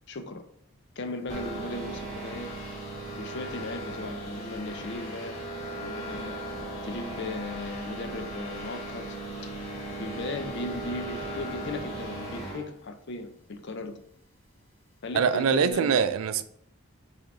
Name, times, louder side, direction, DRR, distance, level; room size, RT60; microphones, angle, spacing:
voice 1, 0.1-0.4 1.0-2.5 3.2-5.4 5.7-6.4 6.8-9.2 9.4-9.5 10.0-14.0 15.0-16.0, left 2 dB, 55° left, 0.5 m, -37 dB
sound 1, 1.3-12.7, right 1 dB, 35° left, 1.4 m, -37 dB
voice 2, 15.1-16.4, right 6 dB, 80° right, 0.4 m, -23 dB
6.0 x 2.8 x 3.1 m
head